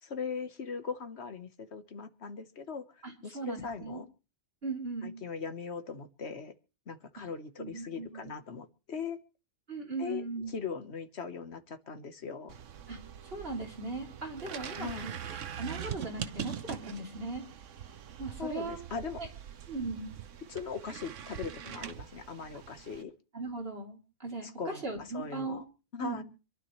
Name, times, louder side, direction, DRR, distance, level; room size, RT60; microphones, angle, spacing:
voice 1, 0.0-2.9 3.2-4.0 5.0-6.5 6.9-9.2 10.0-10.2 10.5-12.6 14.8-15.1 18.4-19.2 20.5-23.1 24.4-25.6 25.9-26.2, left 5 dB, 65° left, 10 dB, 1.6 m, -39 dB
voice 2, 3.0-4.0 4.6-5.2 7.2-7.3 7.6-8.3 9.7-10.6 12.9-17.4 18.2-18.8 19.2-19.3 19.7-20.2 23.3-25.6 26.0-26.2, right 3 dB, 55° right, 1 dB, 3.6 m, -38 dB
sound 1, 12.5-23.0, right 9 dB, 85° right, 1.3 m, -43 dB
26.5 x 12.0 x 3.2 m, 0.33 s
omnidirectional pair, 1.2 m